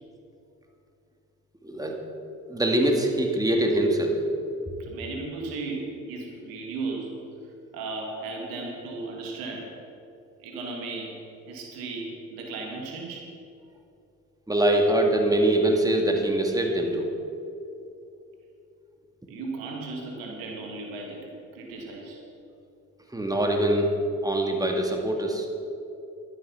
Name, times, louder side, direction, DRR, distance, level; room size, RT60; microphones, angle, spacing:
voice 1, 1.6-2.0 2.5-4.2 14.5-17.1 23.1-23.9 24.2-25.5, right 1 dB, 10° right, 2 dB, 2.2 m, -23 dB
voice 2, 4.8-7.2 7.7-9.7 10.4-13.3 19.3-22.2, right 3 dB, 85° right, 0 dB, 2.2 m, -36 dB
12.0 x 10.0 x 5.9 m, 2.7 s
supercardioid pair, 55°, 35 cm